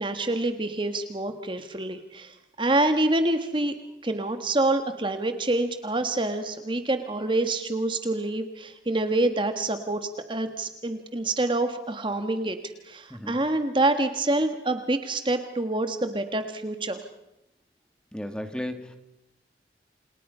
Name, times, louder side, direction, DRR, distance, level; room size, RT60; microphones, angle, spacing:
voice 1, 0.0-3.7 4.0-12.6 12.8-17.0, right 2 dB, 30° right, 8 dB, 1.5 m, -26 dB
voice 2, 13.1-13.4 18.1-18.9, left 1 dB, 5° left, 7 dB, 2.2 m, -34 dB
29.0 x 28.5 x 5.6 m, 0.90 s
head